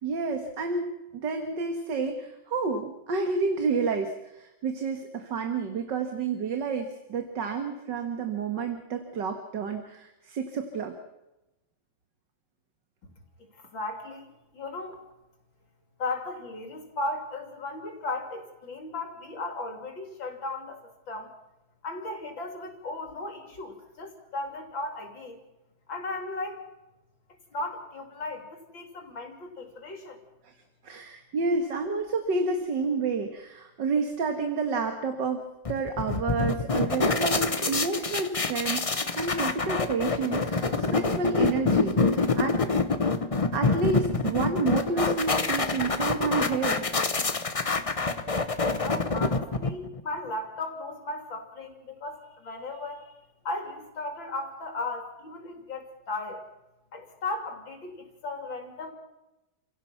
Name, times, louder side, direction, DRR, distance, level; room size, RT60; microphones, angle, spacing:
voice 1, 0.0-10.9 30.4-30.5 30.8-35.4 35.7-42.6 43.5-46.9, right 4 dB, 65° right, 6 dB, 2.3 m, -30 dB
voice 2, 13.4-15.0 16.0-21.3 21.8-25.4 25.9-26.6 27.5-30.2 48.8-53.1 53.5-56.4 56.9-58.9, left 2 dB, 80° left, 4 dB, 4.0 m, -36 dB
sound 1, 35.7-50.0, left 3 dB, 30° left, 0.6 m, -26 dB
29.5 x 16.5 x 5.9 m, 0.97 s
omnidirectional pair, 2.1 m